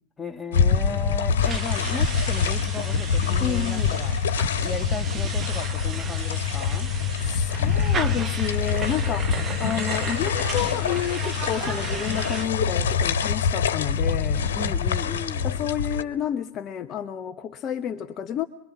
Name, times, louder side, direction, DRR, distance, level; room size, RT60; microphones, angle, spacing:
voice 1, 0.2-4.1 4.6-6.9 14.6-15.6, left 3 dB, 10° left, 1.8 m, -35 dB
sound 1, 0.5-16.0, left 6 dB, 60° left, 1.8 m, -25 dB
sound 2, 1.4-12.5, right 5 dB, 20° right, 2.1 m, -35 dB
voice 2, 3.4-3.9 7.2-14.5 15.4-18.5, left 9 dB, 30° left, 1.1 m, -30 dB
26.0 x 24.0 x 8.2 m
figure-of-eight pair, 90°, 0 cm